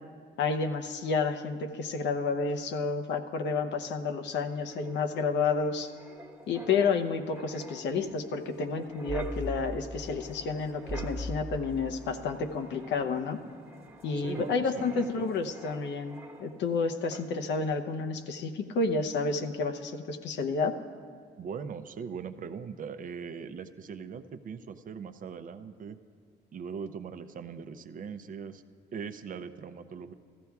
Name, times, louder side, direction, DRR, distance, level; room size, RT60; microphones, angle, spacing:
voice 1, 0.4-5.9 6.5-13.4 14.0-20.7, left 4 dB, 75° left, 6 dB, 0.8 m, -30 dB
Wind, 4.5-16.8 17.1-17.4, right 1 dB, 10° right, 1.0 m, -43 dB
voice 2, 14.1-15.2 21.4-26.0 26.5-28.6 28.9-30.1, right 6 dB, 50° right, 10 dB, 0.5 m, -40 dB
15.5 x 14.0 x 2.3 m, 2.1 s
cardioid pair, 100°, 18 cm